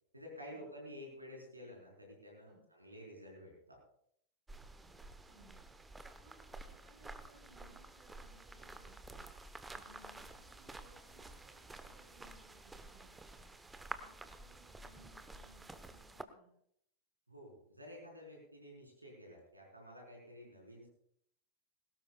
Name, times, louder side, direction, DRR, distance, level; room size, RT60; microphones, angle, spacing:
voice 1, 0.1-3.8 17.3-20.9, equal, 85° right, -1 dB, 4.3 m, -52 dB
sound 1, 4.5-16.2, right 2 dB, 10° right, 1.0 m, -51 dB
voice 2, 4.8-16.5, right 1 dB, 40° right, 3 dB, 4.1 m, -66 dB
20.5 x 18.0 x 2.4 m, 0.70 s
figure-of-eight pair, 90°, 0 cm